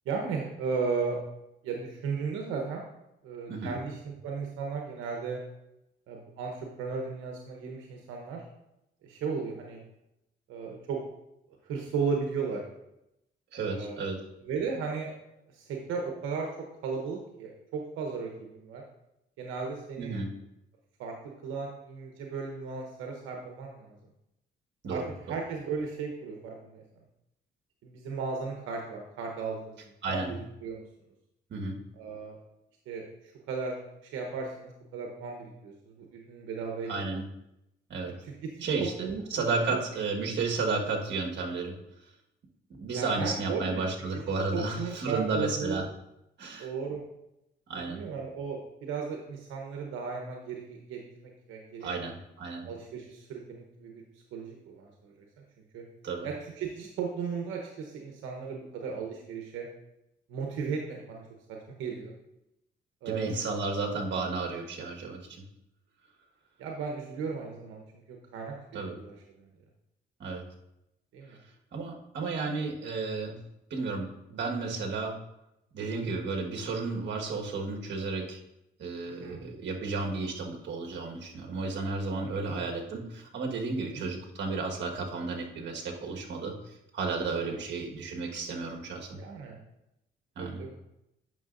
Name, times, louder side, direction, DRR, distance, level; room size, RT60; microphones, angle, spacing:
voice 1, 0.1-1.2 1.6-2.8 3.2-5.4 6.1-8.4 9.0-9.8 10.5-11.0 11.6-12.6 13.6-14.0 14.4-15.1 15.5-16.5 16.8-18.8 19.4-20.1 21.0-21.1 21.4-24.0 24.9-25.0 25.3-26.8 27.8-30.3 30.6-30.8 32.0-32.4 32.9-33.8 34.0-37.2 38.2-39.5 42.9-43.8 44.5-45.8 46.6-47.0 47.9-52.0 52.6-54.0 54.3-55.1 55.7-55.8 56.2-59.7 60.3-61.2 61.8-62.1 63.0-63.4 66.6-67.8 68.1-68.6 68.9-69.5 71.1-71.4 75.8-76.2 79.1-79.4 82.2-82.6 83.8-84.0 87.4-87.6 89.2-89.6 90.4-90.8, right 5 dB, 90° right, 1 dB, 0.9 m, -35 dB
voice 2, 13.5-14.2 20.0-20.3 24.8-25.4 30.0-30.3 31.5-31.8 36.9-37.2 37.9-38.1 38.6-41.8 42.8-45.8 46.4-46.7 47.7-48.0 51.8-52.7 56.0-56.3 63.0-65.4 68.7-69.0 70.2-70.4 71.3-71.4 71.7-73.4 73.7-75.1 75.7-78.4 78.8-89.2 90.4-90.6, right 3 dB, 65° right, 1 dB, 1.5 m, -33 dB
9.3 x 6.1 x 2.5 m, 0.86 s
cardioid pair, 90°, 20 cm